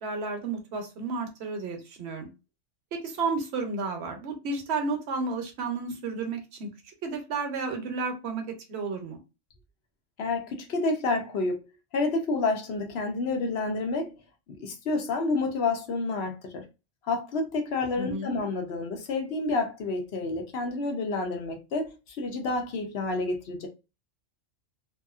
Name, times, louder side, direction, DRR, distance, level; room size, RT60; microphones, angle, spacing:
voice 1, 0.0-2.3 2.9-6.7 7.0-8.4 8.7-9.2 17.9-18.3, right 4 dB, 60° right, 1.0 m, -32 dB
voice 2, 10.2-11.7 11.9-14.2 14.6-16.6 17.0-23.7, left 3 dB, 60° left, 0.9 m, -29 dB
2.7 x 2.5 x 2.4 m
omnidirectional pair, 1.3 m